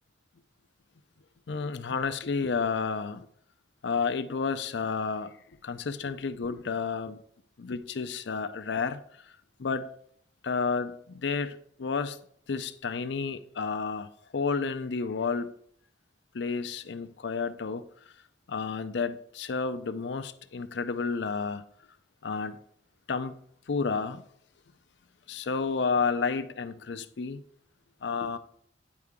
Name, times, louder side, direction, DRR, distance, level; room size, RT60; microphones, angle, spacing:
voice 1, 1.5-3.3 3.8-5.3 5.6-7.2 7.6-9.0 9.6-9.9 10.4-12.2 12.5-14.1 14.3-15.5 16.3-17.8 18.5-21.6 22.2-22.6 23.1-23.4 23.7-24.2 25.3-27.4 28.0-28.4, left 5 dB, 70° left, 0.5 m, -31 dB
9.6 x 4.7 x 3.6 m
head